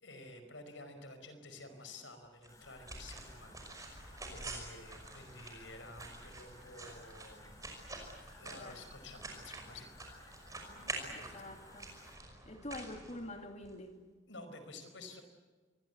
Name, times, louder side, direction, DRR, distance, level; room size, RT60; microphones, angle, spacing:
voice 1, 0.0-7.7 8.4-10.4 10.9-11.5 14.3-15.2, left 2 dB, 75° left, 8 dB, 5.1 m, -52 dB
sound 1, 2.4-13.7, right 2 dB, 15° right, 5.6 m, -48 dB
sound 2, 2.5-12.2, left 2 dB, 20° left, 3.8 m, -59 dB
voice 2, 8.4-8.8 11.1-11.9 12.5-14.0, left 1 dB, 35° left, 5 dB, 2.7 m, -46 dB
26.5 x 22.5 x 8.2 m, 1.4 s
head